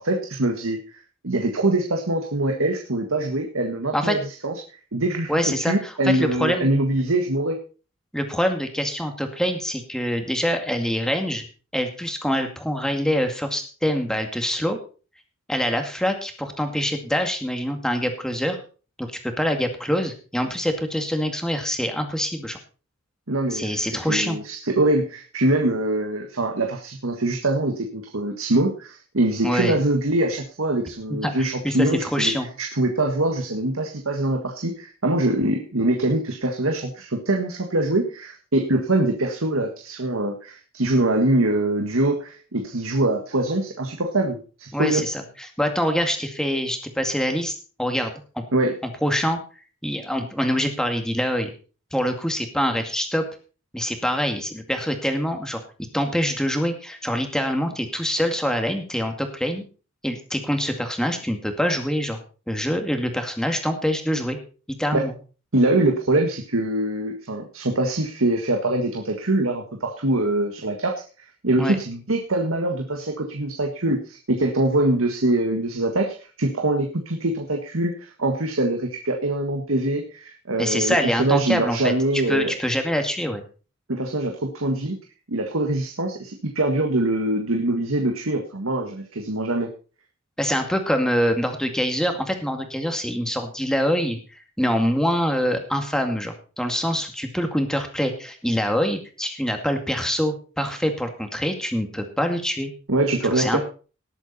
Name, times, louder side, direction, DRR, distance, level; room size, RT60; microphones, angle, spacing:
voice 1, 0.0-4.5 4.9-7.6 23.3-32.3 32.6-45.0 48.5-48.7 64.9-65.1 65.5-82.6 83.9-85.0 85.3-89.7 102.9-103.6, right 2 dB, 80° right, 3 dB, 1.7 m, -23 dB
voice 2, 5.3-6.7 8.1-11.4 11.7-14.8 15.5-18.6 19.0-19.1 19.4-22.6 23.5-24.4 29.4-29.8 31.2-32.5 44.7-45.2 45.6-47.5 47.8-48.1 48.4-48.5 49.0-49.4 49.8-51.5 51.9-53.2 53.7-55.6 55.9-59.6 60.0-62.2 62.5-64.4 64.7-65.1 71.6-71.8 80.6-81.9 82.3-83.4 90.4-102.7 103.3-103.6, equal, 5° left, 5 dB, 2.1 m, -25 dB
19.0 x 8.2 x 4.2 m, 0.37 s
head